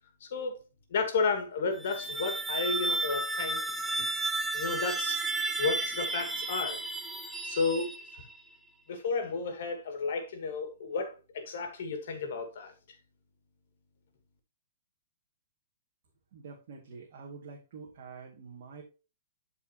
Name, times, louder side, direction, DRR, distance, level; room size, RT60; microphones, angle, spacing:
voice 1, 0.2-0.6 0.9-3.6 4.0-4.1 4.5-5.2 5.6-6.8 7.4-7.9 8.9-12.7, left 4 dB, 50° left, 2.0 m, -32 dB
sound 1, 1.7-8.4, right 2 dB, 5° right, 0.6 m, -33 dB
voice 2, 16.3-18.8, right 5 dB, 45° right, 2.1 m, -47 dB
12.5 x 4.6 x 2.9 m
hypercardioid pair, 175°, 0 cm